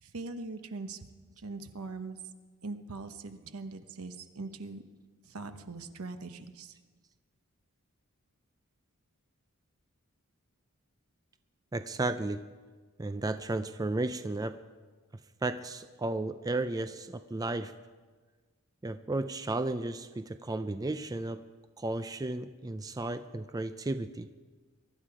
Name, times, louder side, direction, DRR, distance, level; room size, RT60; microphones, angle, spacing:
voice 1, 0.0-1.0 1.4-2.2 2.6-4.8 5.2-6.8, right 3 dB, 80° right, 8 dB, 1.0 m, -41 dB
voice 2, 11.7-12.5 13.0-14.6 15.4-17.7 18.8-21.4 21.8-24.3, right 2 dB, 15° right, 10 dB, 0.4 m, -33 dB
22.5 x 11.5 x 4.9 m, 1.4 s
head